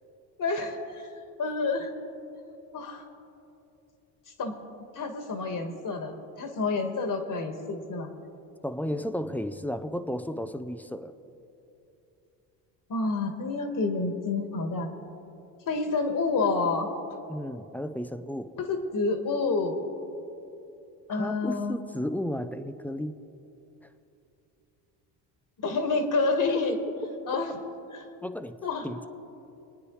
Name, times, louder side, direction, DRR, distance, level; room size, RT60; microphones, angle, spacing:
voice 1, 0.4-1.1 1.4-1.9 2.7-3.0 4.4-4.6 4.9-8.1 12.9-14.9 15.7-16.9 18.6-19.8 21.1-21.8 25.6-26.8 27.3-27.5 27.9-28.0 28.6-28.8, left 3 dB, 45° left, 1.5 m, -28 dB
voice 2, 8.6-11.1 17.3-18.6 21.1-23.2 28.2-29.1, equal, 5° left, 0.4 m, -33 dB
24.0 x 9.6 x 3.1 m
supercardioid pair, 80°, 44 cm